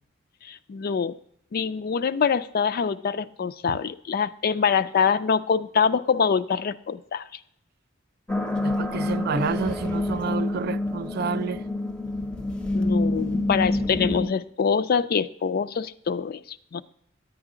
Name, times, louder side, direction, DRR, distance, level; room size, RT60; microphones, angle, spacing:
voice 1, 0.4-1.1 1.5-7.3 12.7-16.8, left 6 dB, 50° left, 0.4 m, -25 dB
sound 1, 8.3-14.2, left 2 dB, 5° left, 0.7 m, -27 dB
voice 2, 8.6-11.6, right 5 dB, 55° right, 0.4 m, -29 dB
9.6 x 9.1 x 3.7 m
head